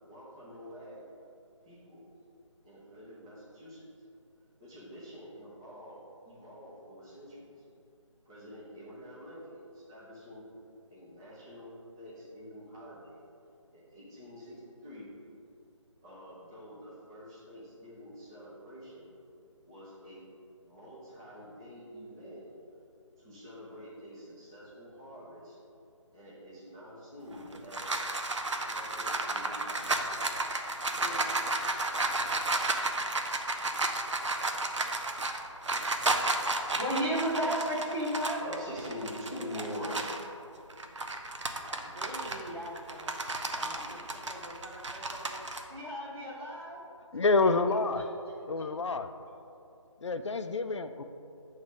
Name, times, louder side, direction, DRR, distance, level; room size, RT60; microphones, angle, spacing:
voice 1, 0.0-1.0 1.7-2.0 2.6-3.9 4.6-6.0 6.2-7.5 8.2-10.4 10.9-13.2 13.7-15.1 16.0-19.1 19.7-20.3 20.6-22.4 23.2-25.6 26.1-28.1 28.5-30.5 30.9-31.5 38.4-40.0 40.8-40.9, equal, 10° right, -8 dB, 0.5 m, -46 dB
sound 1, 27.3-40.3 40.7-45.6, right 2 dB, 65° right, 0.6 m, -32 dB
voice 2, 36.7-38.4 39.5-40.0 41.7-43.1 43.5-45.4 45.7-46.8 47.4-48.0 48.6-48.7, equal, 50° right, -6 dB, 1.2 m, -36 dB
voice 3, 47.1-48.1 48.5-49.1 50.0-51.0, left 3 dB, 65° left, 9 dB, 0.4 m, -28 dB
7.2 x 3.2 x 5.1 m, 2.6 s
figure-of-eight pair, 160°, 17 cm